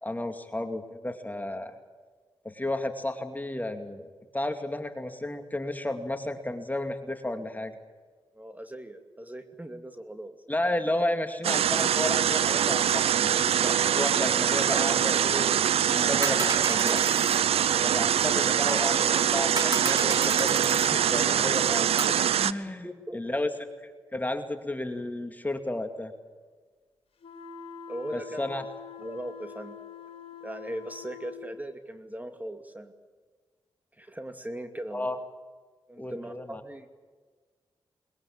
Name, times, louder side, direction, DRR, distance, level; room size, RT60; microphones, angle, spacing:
voice 1, 0.0-1.7 2.4-7.7 10.5-17.0 17.8-21.9 22.4-22.9 23.1-23.5 23.8-26.1 28.1-28.6 34.9-35.2 36.0-36.6, left 1 dB, 15° left, 7 dB, 2.4 m, -32 dB
voice 2, 8.3-10.4 22.8-23.2 27.9-28.5 29.0-29.8 30.4-32.9 34.0-35.1 35.9-36.9, right 1 dB, 15° right, 7 dB, 2.5 m, -39 dB
sound 1, 11.4-22.5, right 9 dB, 85° right, 0.6 m, -24 dB
sound 2, 16.2-17.4 18.7-18.8 19.6-20.9 22.0-22.1, right 3 dB, 45° right, 3.1 m, -33 dB
sound 3, 27.2-31.5, left 8 dB, 75° left, 3.0 m, -45 dB
21.0 x 21.0 x 8.8 m, 1.4 s
cardioid pair, 50°, 10 cm